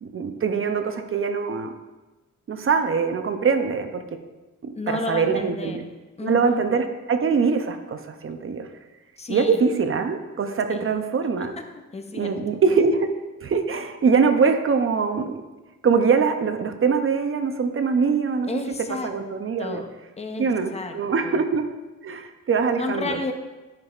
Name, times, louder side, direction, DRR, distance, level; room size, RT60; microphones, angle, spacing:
voice 1, 0.0-1.7 2.5-4.0 4.6-5.8 6.2-8.7 9.3-11.5 12.1-13.1 13.4-15.4 15.8-18.5 19.0-19.8 20.4-21.7 22.0-23.2, right 5 dB, 45° right, 7 dB, 0.5 m, -23 dB
voice 2, 4.8-5.9 6.2-6.6 9.2-9.6 10.7-10.9 11.4-11.5 11.9-12.4 18.5-19.1 19.6-19.9 20.2-21.0 21.2-21.4 22.8-23.3, left 3 dB, 20° left, 6 dB, 0.5 m, -32 dB
10.5 x 5.9 x 2.4 m, 1.2 s
wide cardioid pair, 155°, 31 cm